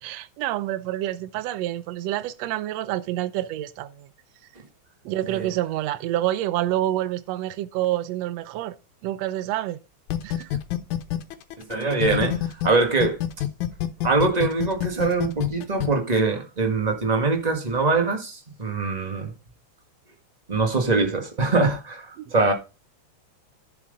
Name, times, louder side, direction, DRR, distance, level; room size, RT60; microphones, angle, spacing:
voice 1, 0.0-4.1 5.1-8.8 9.0-9.8 10.2-10.5 12.1-12.2 22.2-22.3, right 14 dB, 70° right, 1.8 m, -28 dB
sound 1, 10.1-12.7 13.0-15.9, left 13 dB, 85° left, 2.4 m, -25 dB
voice 2, 11.6-13.2 14.0-19.3 20.5-22.5, right 3 dB, 20° right, 1.1 m, -23 dB
11.0 x 5.9 x 5.3 m
omnidirectional pair, 3.3 m